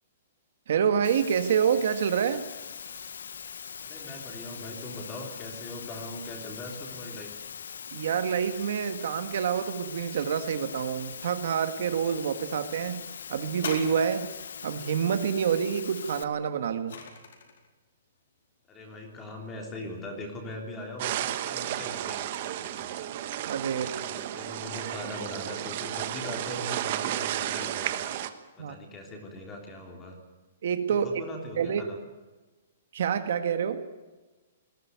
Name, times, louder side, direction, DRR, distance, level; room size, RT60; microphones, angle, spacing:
voice 1, 0.7-2.4 7.9-13.0 13.3-14.3 14.6-17.0 23.4-23.9 28.6-28.7 30.6-31.1 31.6-31.8 32.9-33.8, right 7 dB, 55° right, 9 dB, 1.7 m, -27 dB
Water, 1.0-16.2, left 7 dB, 80° left, 1.4 m, -42 dB
voice 2, 3.8-7.3 18.7-22.9 23.7-28.1 28.6-30.2 30.9-32.0, left 1 dB, 15° left, 2 dB, 3.4 m, -41 dB
sound 1, 13.5-14.6 16.3-17.7 18.5-18.6, left 5 dB, 60° left, 4.7 m, -40 dB
sound 2, 21.0-28.3, right 11 dB, 35° right, 1.3 m, -33 dB
20.5 x 16.0 x 9.5 m, 1.2 s
hypercardioid pair, 175°, 0 cm